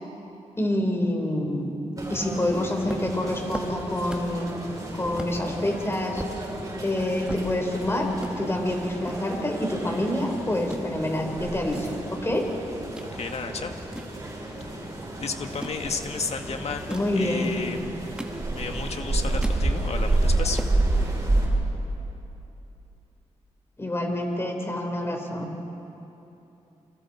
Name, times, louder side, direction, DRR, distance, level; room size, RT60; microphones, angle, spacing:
voice 1, 0.6-1.7 2.1-4.5 4.9-6.2 6.8-12.5 16.9-17.5 23.8-25.5, left 1 dB, 20° left, 2 dB, 4.5 m, -27 dB
sound 1, 2.0-21.5, right 2 dB, 30° right, 7.2 m, -30 dB
sound 2, 2.9-4.4 4.8-4.9 5.2-5.4 5.8-7.8 8.1-8.3 9.0-10.2 10.5-10.9 11.4-13.1 13.5-14.8 15.4-15.8 16.7-17.2 17.8-18.8 19.1-19.7 20.1-20.2 20.4-20.8, right 1 dB, 5° right, 1.9 m, -38 dB
voice 2, 13.1-13.7 14.7-18.0 18.5-20.6, left 4 dB, 60° left, 5 dB, 1.9 m, -33 dB
29.0 x 26.5 x 4.5 m, 2.9 s
cardioid pair, 90°, 12 cm